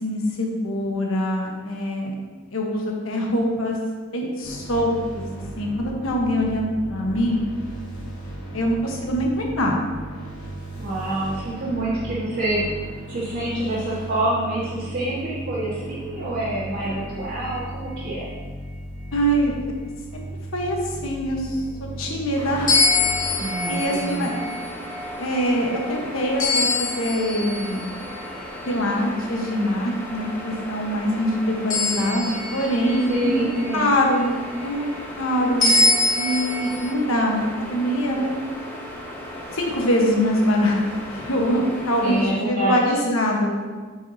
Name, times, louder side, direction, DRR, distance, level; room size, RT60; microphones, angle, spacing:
voice 1, 0.0-2.1 2.5-3.8 4.1-5.3 5.6-7.4 8.5-9.8 19.1-19.6 20.1-20.2 20.5-21.6 22.0-22.8 23.7-24.3 25.2-28.0 28.6-33.5 33.7-34.3 34.6-34.9 35.2-35.8 36.1-38.4 39.5-40.8 41.1-43.5, equal, 70° left, 0 dB, 1.2 m, -23 dB
sound 1, 4.4-23.3, right 1 dB, 90° left, 2.2 m, -36 dB
voice 2, 10.8-18.3 23.3-24.3 33.1-33.9 42.0-43.0, right 1 dB, 55° right, -11 dB, 1.7 m, -26 dB
sound 2, 22.4-42.3, left 1 dB, 10° left, 1.1 m, -36 dB
sound 3, 22.7-28.2 31.7-33.8 35.6-36.9, left 3 dB, 35° left, 2.2 m, -24 dB
8.0 x 6.1 x 2.8 m, 1.4 s
head